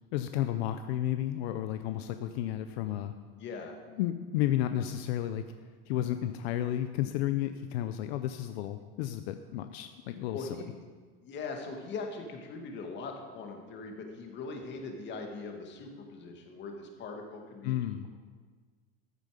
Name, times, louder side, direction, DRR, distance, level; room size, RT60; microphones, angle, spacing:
voice 1, 0.1-3.1 4.0-5.4 5.9-10.6 17.6-18.1, left 12 dB, 75° left, 9 dB, 0.7 m, -32 dB
voice 2, 3.4-3.7 10.3-10.7 11.2-17.8, left 4 dB, 35° left, 3 dB, 2.0 m, -41 dB
14.0 x 9.4 x 5.1 m, 1.5 s
supercardioid pair, 150°, 31 cm